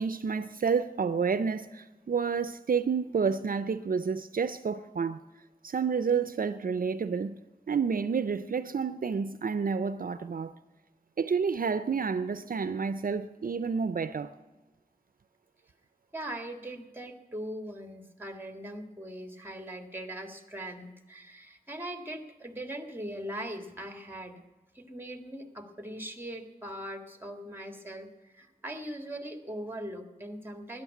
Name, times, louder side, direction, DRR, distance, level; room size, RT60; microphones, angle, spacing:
voice 1, 0.0-5.2 5.6-7.4 7.7-10.5 11.2-14.4, right 5 dB, 65° right, 0.4 m, -29 dB
voice 2, 16.1-24.4 24.7-30.8, right 1 dB, 15° right, 1.7 m, -40 dB
13.0 x 9.9 x 8.2 m
wide cardioid pair, 60°, 15 cm